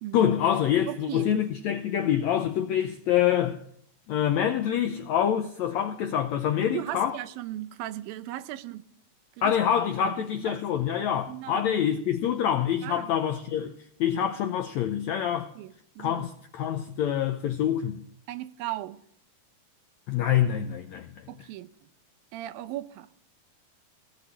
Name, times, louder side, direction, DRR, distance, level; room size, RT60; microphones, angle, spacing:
voice 1, 0.1-3.6 4.1-7.2 9.4-15.5 16.0-18.0 20.1-21.3, left 9 dB, 85° left, 1.6 m, -26 dB
voice 2, 0.9-1.3 6.7-8.8 9.4-9.6 10.0-10.1 10.4-10.5 11.3-11.7 12.8-13.1 15.6-16.3 18.3-19.0 21.3-21.7 22.3-23.1, right 14 dB, 90° right, 2.5 m, -37 dB
17.0 x 6.2 x 9.7 m
omnidirectional pair, 4.1 m